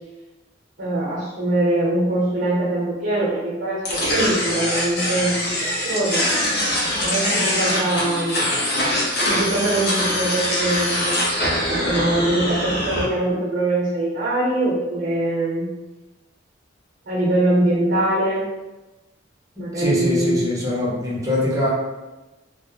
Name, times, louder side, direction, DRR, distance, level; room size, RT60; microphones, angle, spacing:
voice 1, 0.8-6.3 7.0-8.4 9.2-11.2 11.7-15.7 17.1-18.4 19.6-20.4, right 1 dB, 60° right, -6 dB, 0.8 m, -22 dB
sound 1, 3.8-13.0, left 1 dB, 60° left, 0.7 m, -23 dB
voice 2, 19.6-21.7, left 1 dB, 20° right, -6 dB, 0.7 m, -23 dB
2.2 x 2.1 x 2.9 m, 1.1 s
head